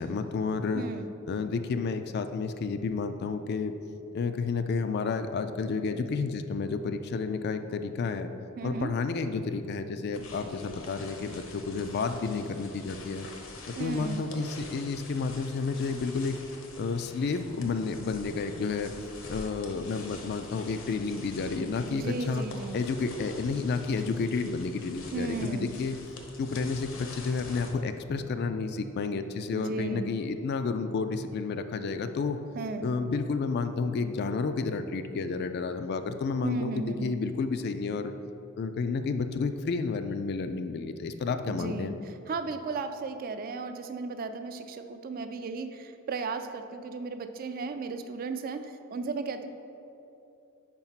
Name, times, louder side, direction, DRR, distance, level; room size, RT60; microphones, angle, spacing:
voice 1, 0.0-0.8 1.3-3.7 4.1-8.3 8.6-13.3 13.7-16.4 16.8-18.9 19.3-22.5 22.7-26.0 26.4-32.4 32.8-38.1 38.6-41.9, left 4 dB, 50° left, 9 dB, 0.3 m, -31 dB
voice 2, 0.7-1.1 8.6-8.9 13.8-14.2 21.9-22.8 25.1-25.8 29.5-30.1 32.6-32.9 36.4-37.1 41.4-49.5, right 4 dB, 45° right, 8 dB, 0.3 m, -35 dB
sound 1, 10.1-27.7, left 2 dB, 70° left, 0.9 m, -46 dB
4.9 x 4.5 x 5.6 m, 2.8 s
head